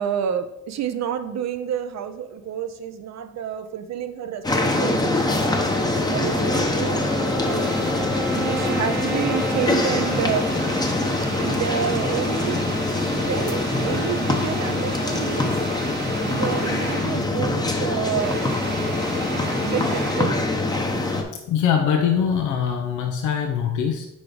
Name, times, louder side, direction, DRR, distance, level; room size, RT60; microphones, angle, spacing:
voice 1, 0.0-5.2 6.1-7.1 7.4-7.7 8.3-10.5 11.4-12.8 13.1-15.5 16.2-18.4 19.6-20.5, right 8 dB, 60° right, 9 dB, 0.6 m, -29 dB
sound 1, 4.4-21.2, left 2 dB, 15° left, 0.9 m, -24 dB
sound 2, 5.3-17.3 17.6-20.5, right 1 dB, 35° right, 1.1 m, -34 dB
Wind instrument woodwind instrument, 6.9-11.5, right 1 dB, 5° right, 0.4 m, -32 dB
voice 2, 21.5-24.1, left 8 dB, 85° left, 3 dB, 0.7 m, -22 dB
4.6 x 4.2 x 5.0 m, 0.85 s
cardioid pair, 90°, 30 cm